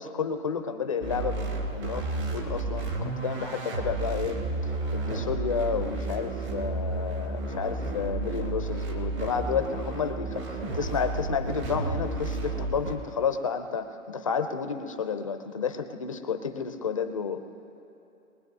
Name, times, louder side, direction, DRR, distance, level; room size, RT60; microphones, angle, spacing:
voice 1, 0.0-4.4 4.9-17.4, left 6 dB, 25° left, 8 dB, 0.4 m, -31 dB
sound 1, 1.0-13.0, right 3 dB, 55° right, 3.2 m, -32 dB
22.0 x 20.0 x 2.7 m, 2.8 s
hypercardioid pair, 155°, 40 cm